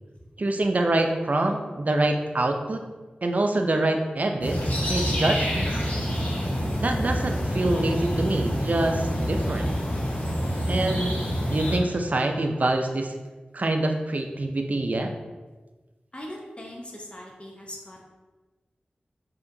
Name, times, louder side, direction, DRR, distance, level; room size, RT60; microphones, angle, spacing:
voice 1, 0.4-2.8 3.2-4.6 4.9-5.7 6.8-9.7 10.7-11.2 11.5-13.1 13.5-15.1, right 2 dB, 50° right, 4 dB, 0.4 m, -25 dB
sound 1, 4.4-11.8, equal, 60° left, 1.1 m, -27 dB
voice 2, 16.1-18.0, left 1 dB, 35° left, -2 dB, 0.8 m, -40 dB
4.9 x 2.8 x 2.6 m, 1.3 s
wide cardioid pair, 55°, 3 cm